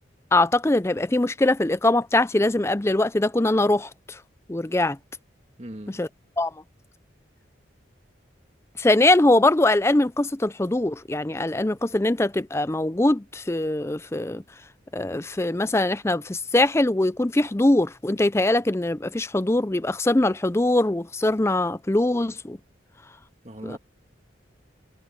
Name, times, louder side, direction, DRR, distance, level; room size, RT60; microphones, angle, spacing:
voice 1, 0.3-4.2 4.5-5.0 5.9-6.1 6.4-6.5 8.8-14.4 14.9-22.6 23.6-23.8, left 2 dB, 15° left, 0.5 m, -22 dB
voice 2, 5.6-6.0 23.4-23.8, right 1 dB, 35° right, 1.9 m, -39 dB
head